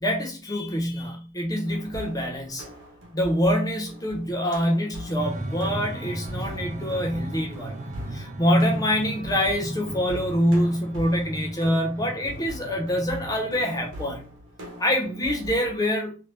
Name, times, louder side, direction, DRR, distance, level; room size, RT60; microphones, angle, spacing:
voice 1, 0.0-2.6 3.1-7.7 8.1-14.2 14.8-16.1, equal, 15° left, 1 dB, 0.8 m, -25 dB
sound 1, 1.6-15.7, equal, 55° right, 1.2 m, -42 dB
sound 2, 5.2-13.6, right 1 dB, 35° right, 0.6 m, -37 dB
3.7 x 2.9 x 3.2 m, 0.35 s
head